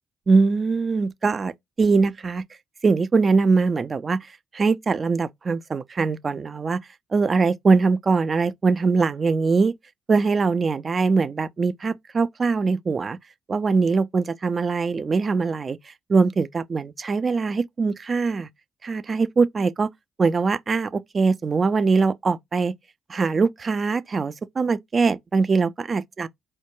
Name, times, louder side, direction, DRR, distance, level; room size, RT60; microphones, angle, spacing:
voice 1, 0.3-2.4 2.8-6.8 7.1-9.7 10.1-13.2 13.5-18.5 18.8-19.9 20.2-22.7 23.1-26.3, right 4 dB, 45° right, 0.3 m, -22 dB
4.3 x 2.2 x 2.9 m
hypercardioid pair, 50°, 0 cm